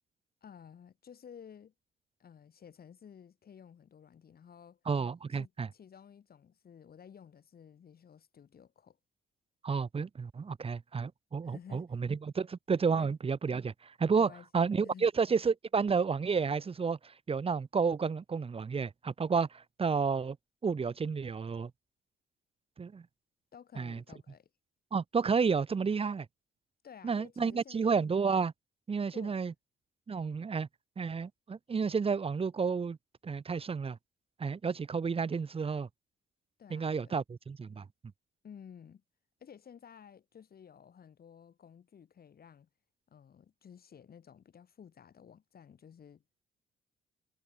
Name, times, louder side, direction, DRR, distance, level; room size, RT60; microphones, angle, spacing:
voice 1, 0.4-1.7 2.2-4.8 5.3-9.0 11.4-12.0 12.9-13.1 14.2-15.1 23.5-24.5 26.8-27.8 29.1-29.5 36.6-37.1 38.4-39.0 39.4-42.7 43.1-46.4, left 8 dB, 50° left, 2.4 m, -54 dB
voice 2, 4.9-5.7 9.6-20.4 20.6-21.7 22.8-23.0 23.8-24.0 24.9-26.3 27.0-28.5 28.9-29.5 30.1-30.7 31.0-33.0 33.2-34.0 34.4-35.9 36.7-37.8, right 5 dB, 30° right, 0.9 m, -31 dB
cardioid pair, 90°, 20 cm